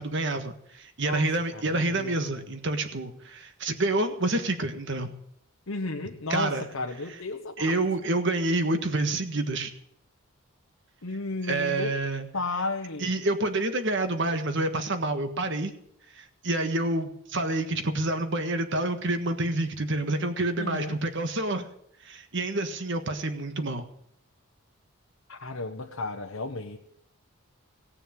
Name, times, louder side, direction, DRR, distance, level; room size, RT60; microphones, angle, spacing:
voice 1, 0.0-5.1 6.3-6.6 7.6-9.7 11.5-12.3 13.0-15.7 16.2-21.7 22.0-23.9, right 2 dB, 55° right, 7 dB, 1.5 m, -28 dB
voice 2, 1.0-2.4 5.7-7.7 11.0-12.0 12.3-13.1 20.6-21.0 25.3-26.8, left 3 dB, 65° left, 3 dB, 1.0 m, -34 dB
17.5 x 6.8 x 8.8 m, 0.71 s
head